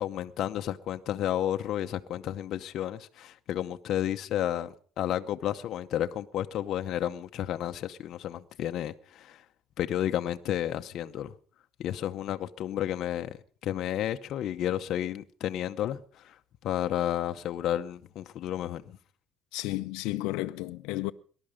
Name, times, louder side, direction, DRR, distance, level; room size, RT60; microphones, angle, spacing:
voice 1, 0.0-9.4 9.8-11.3 11.8-13.3 13.6-16.3 16.6-18.8, left 11 dB, 55° left, 0.8 m, -31 dB
voice 2, 19.5-21.1, left 18 dB, 85° left, 0.6 m, -32 dB
18.5 x 12.0 x 5.0 m
cardioid pair, 135°, 0 cm